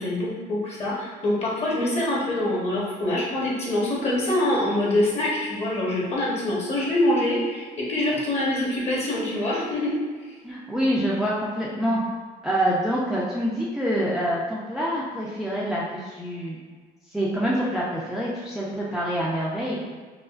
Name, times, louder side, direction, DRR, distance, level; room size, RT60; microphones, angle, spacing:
voice 1, 0.0-9.9, left 1 dB, 40° left, -5 dB, 1.2 m, -25 dB
voice 2, 10.4-12.0 12.4-16.6 17.1-19.9, equal, 5° right, -7 dB, 0.5 m, -26 dB
4.8 x 2.1 x 2.5 m, 1.5 s
cardioid pair, 110°, 17 cm